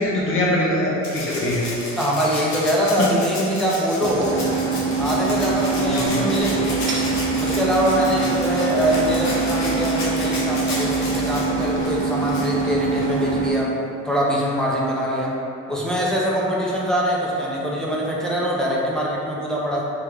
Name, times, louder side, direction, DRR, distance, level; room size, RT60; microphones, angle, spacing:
voice 1, 0.0-1.8 3.0-3.1 3.4-3.5 5.8-6.2, left 1 dB, 45° left, -5 dB, 0.8 m, -23 dB
Rattle (instrument), 1.0-13.3 14.7-14.8, left 1 dB, 65° left, 1.0 m, -33 dB
voice 2, 2.0-4.5 5.0-6.8 7.4-13.8 14.0-15.4 15.7-19.9, equal, ahead, -5 dB, 0.7 m, -23 dB
sound 1, 4.0-13.5, right 4 dB, 40° right, 0.6 m, -24 dB
3.4 x 3.1 x 3.5 m, 2.7 s
cardioid pair, 90°, 30 cm